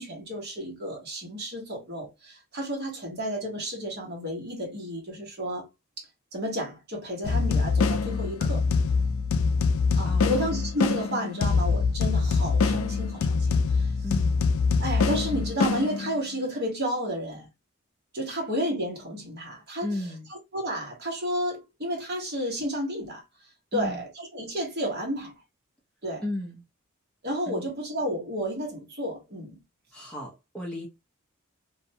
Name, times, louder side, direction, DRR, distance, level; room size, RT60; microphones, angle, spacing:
voice 1, 0.0-5.7 6.0-6.1 6.3-8.7 9.9-13.9 14.8-17.5 18.1-20.0 20.5-23.2 23.7-25.3 26.0-26.2 27.2-29.5, equal, 50° right, 1.1 m, -31 dB
sound 1, 7.2-16.4, left 4 dB, 75° left, 0.3 m, -24 dB
voice 2, 10.1-10.4 14.0-14.3 19.8-20.3 23.7-24.0 26.2-26.6 27.5-27.7 29.9-30.9, left 1 dB, 5° left, 0.6 m, -34 dB
2.6 x 2.1 x 2.8 m
head